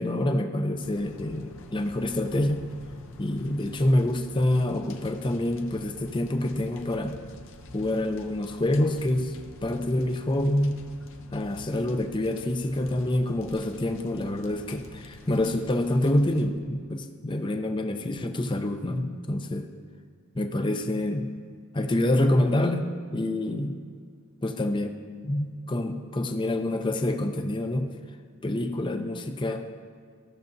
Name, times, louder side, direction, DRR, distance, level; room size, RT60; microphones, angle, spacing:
voice 1, 0.0-2.6 3.2-7.2 7.7-9.4 9.6-10.8 11.3-19.7 20.3-21.3 21.7-23.8 24.4-25.0 25.2-27.9 28.4-29.6, left 1 dB, 20° left, 6 dB, 0.5 m, -27 dB
sound 1, 0.8-16.5, left 2 dB, 60° left, 0.7 m, -46 dB
15.5 x 6.6 x 2.6 m, 2.1 s
head